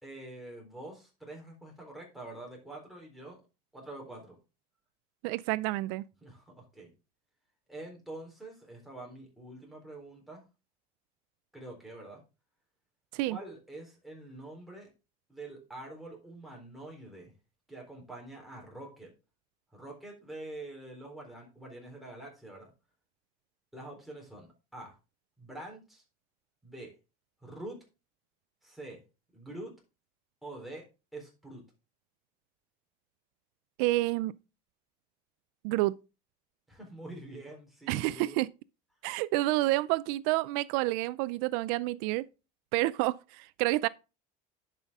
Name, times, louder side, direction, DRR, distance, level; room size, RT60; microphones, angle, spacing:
voice 1, 0.0-3.4 3.7-4.4 6.2-6.9 7.7-10.4 11.5-12.2 13.3-14.9 15.3-17.3 17.7-19.1 19.7-22.7 23.7-25.0 25.4-26.0 26.6-26.9 27.4-27.8 28.6-29.0 29.3-29.8 30.4-30.9 31.1-31.6 36.7-38.4, right 2 dB, ahead, 3.9 m, -45 dB
voice 2, 5.2-6.1 13.1-13.4 33.8-34.4 35.6-36.0 37.9-38.5 39.0-42.3 42.7-43.9, right 19 dB, 85° right, 0.4 m, -29 dB
10.5 x 5.7 x 3.6 m
cardioid pair, 130°, 19 cm